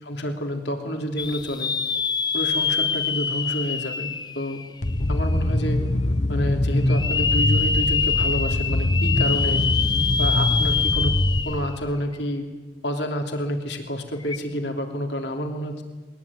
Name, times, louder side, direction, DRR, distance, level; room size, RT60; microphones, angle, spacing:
voice 1, 0.0-1.7 2.3-4.6 5.1-5.8 6.3-9.6 10.2-11.2 11.4-12.5 12.8-15.8, equal, 70° left, 4 dB, 3.2 m, -29 dB
sound 1, 1.2-5.1 5.6-5.7 6.8-11.8 12.1-12.2 14.2-14.4, left 5 dB, 25° left, 0.7 m, -25 dB
sound 2, 4.8-11.4, left 1 dB, 45° left, 1.3 m, -23 dB
21.5 x 20.0 x 9.9 m, 1.2 s
head